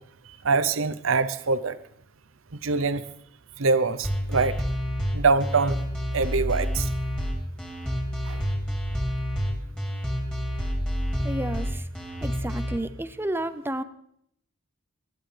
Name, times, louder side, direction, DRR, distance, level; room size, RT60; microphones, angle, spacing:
voice 1, 0.4-1.8 2.6-3.0 3.6-4.6 5.1-5.8 6.1-6.9 8.3-8.4, right 4 dB, 70° right, 13 dB, 0.7 m, -23 dB
sound 1, 4.0-12.8, equal, 5° left, 2.9 m, -28 dB
voice 2, 11.2-11.8 12.2-13.8, right 1 dB, 10° right, 12 dB, 0.6 m, -31 dB
19.5 x 11.0 x 3.3 m, 0.71 s
head